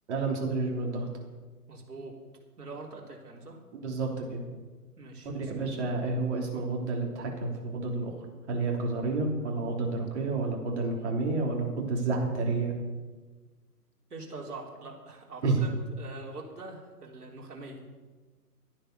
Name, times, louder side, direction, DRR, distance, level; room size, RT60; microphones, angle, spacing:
voice 1, 0.1-1.1 3.7-4.4 5.3-8.1 8.5-12.7 15.4-15.6, right 3 dB, 45° right, 0 dB, 3.3 m, -30 dB
voice 2, 1.7-2.1 2.6-3.6 5.0-5.5 14.1-15.7 16.0-17.8, right 3 dB, 70° right, -1 dB, 3.7 m, -43 dB
12.5 x 10.0 x 6.7 m, 1.3 s
figure-of-eight pair, 135°, 47 cm